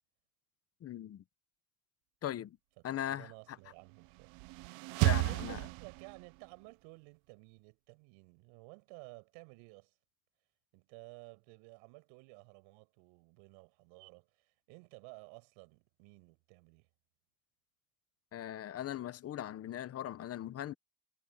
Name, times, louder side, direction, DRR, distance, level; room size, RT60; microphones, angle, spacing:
voice 1, 0.8-1.2 2.2-2.6 2.8-3.3 5.0-5.6 18.3-20.7, left 11 dB, 35° left, 1.0 m, -39 dB
voice 2, 2.8-4.4 4.7-9.9 10.7-16.9, right 32 dB, 90° right, 7.0 m, -55 dB
sound 1, 4.0-6.4, right 28 dB, 70° right, 0.6 m, -33 dB
cardioid pair, 135°, 42 cm